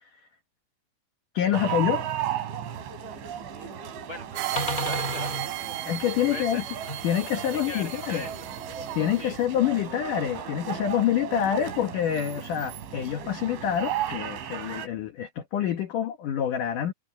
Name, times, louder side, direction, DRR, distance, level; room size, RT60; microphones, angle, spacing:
voice 1, 1.3-2.1 5.9-6.6 7.0-8.3 8.9-16.9, left 10 dB, 85° left, 1.8 m, -27 dB
sound 1, 1.5-14.9, right 10 dB, 70° right, 5.1 m, -35 dB
sound 2, 1.9-2.0 3.4-3.7 4.2-4.3 4.6-9.0 9.6-10.8, left 1 dB, 10° left, 6.3 m, -38 dB
voice 2, 3.5-5.4 5.7-5.9 6.3-6.6 7.5-8.5 9.2-9.4, left 1 dB, 50° right, 1.2 m, -41 dB
sound 3, 4.4-9.4, right 16 dB, 85° right, 4.0 m, -36 dB
omnidirectional pair, 5.8 m